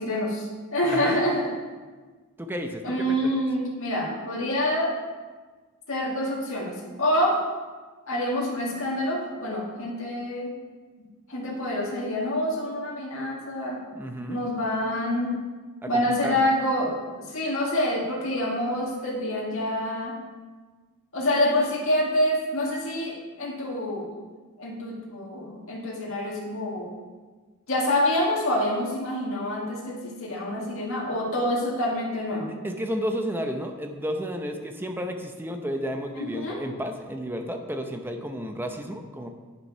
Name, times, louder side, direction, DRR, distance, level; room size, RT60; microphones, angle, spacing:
voice 1, 0.0-1.5 2.8-4.9 5.9-7.4 8.1-10.5 11.0-13.8 14.3-15.3 15.9-20.2 21.1-24.1 24.6-26.9 27.7-32.5 36.1-36.6, left 1 dB, 60° left, -4 dB, 2.0 m, -27 dB
voice 2, 2.4-3.2 13.9-14.4 15.8-15.9 16.2-16.4 32.6-39.3, equal, 10° right, 4 dB, 0.7 m, -32 dB
9.2 x 6.4 x 5.6 m, 1.4 s
head